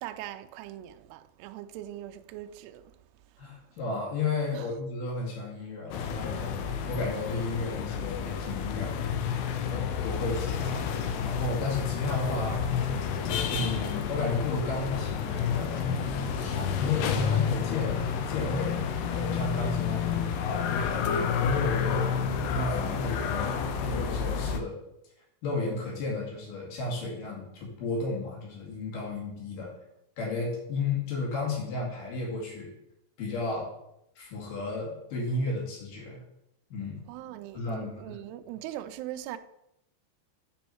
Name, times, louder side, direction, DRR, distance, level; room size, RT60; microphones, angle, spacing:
voice 1, 0.0-3.0 4.5-4.7 37.1-39.4, right 13 dB, 85° right, 2.4 m, -40 dB
voice 2, 3.4-9.0 9.6-10.9 11.2-12.7 13.5-15.9 16.3-20.3 20.6-22.2 22.5-24.8 25.4-29.7 30.2-32.7 33.2-33.7 34.2-36.2 36.7-37.0 37.5-38.2, left 3 dB, 55° left, 3.6 m, -33 dB
sound 1, 5.9-24.6, left 7 dB, 80° left, 2.4 m, -30 dB
7.1 x 7.0 x 4.5 m
omnidirectional pair, 5.2 m